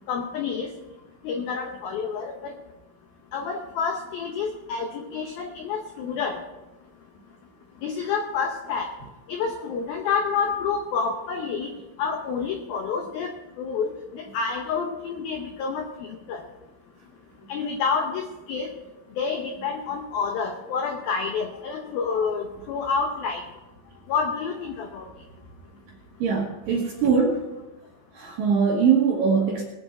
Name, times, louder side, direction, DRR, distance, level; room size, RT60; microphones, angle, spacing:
voice 1, 0.1-0.7 1.2-2.5 3.3-6.4 7.8-8.9 9.3-11.7 12.0-15.9 16.3-16.4 17.5-18.7 19.2-23.4 24.1-25.1, left 5 dB, 90° left, 4 dB, 2.1 m, -28 dB
voice 2, 26.2-27.5 28.1-29.6, right 6 dB, 70° right, -1 dB, 2.2 m, -22 dB
21.0 x 7.5 x 4.3 m, 1.1 s
omnidirectional pair, 5.6 m